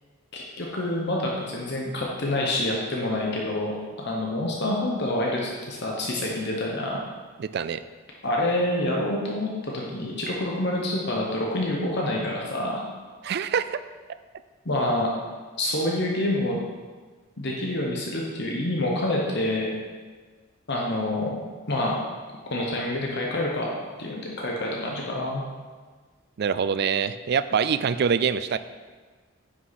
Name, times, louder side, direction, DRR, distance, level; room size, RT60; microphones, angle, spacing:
voice 1, 0.3-7.0 8.2-12.8 14.6-15.1 15.6-16.6 17.4-19.7 20.7-21.4 21.7-22.0 22.5-25.4, left 1 dB, 50° left, -2 dB, 1.1 m, -27 dB
voice 2, 7.4-7.8 13.2-13.8 26.4-28.6, right 6 dB, 50° right, 13 dB, 0.3 m, -25 dB
9.5 x 5.9 x 4.2 m, 1.4 s
head